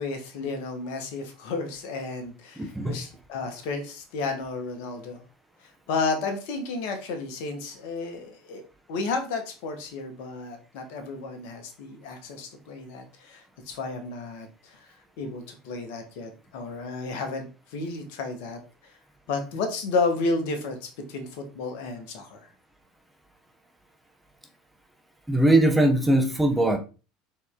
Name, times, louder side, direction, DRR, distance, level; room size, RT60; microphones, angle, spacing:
voice 1, 0.0-5.2 5.9-8.6 8.9-14.5 14.7-14.8 15.2-17.5 17.7-18.6 19.3-22.4, left 3 dB, 65° left, 6 dB, 1.1 m, -32 dB
voice 2, 2.6-3.0 25.3-26.8, right 1 dB, 10° right, 4 dB, 0.9 m, -20 dB
4.3 x 3.2 x 3.6 m, 0.33 s
hypercardioid pair, 75°, 0 cm